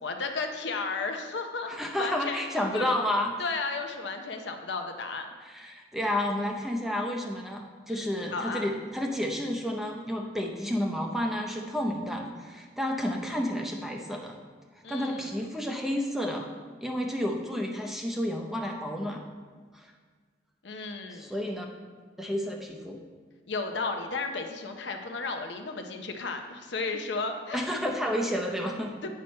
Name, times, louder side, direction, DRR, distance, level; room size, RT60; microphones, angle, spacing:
voice 1, 0.0-2.4 2.7-2.9 3.4-5.3 7.9-8.7 14.8-15.3 20.6-21.3 23.5-27.7 29.0-29.1, left 4 dB, 70° left, 5 dB, 0.7 m, -34 dB
voice 2, 1.7-3.3 5.4-14.4 14.9-16.5 16.8-19.2 19.7-19.9 21.1-21.7 22.2-23.0 27.5-28.9, left 1 dB, ahead, 1 dB, 0.7 m, -31 dB
8.9 x 5.7 x 4.3 m, 1.5 s
head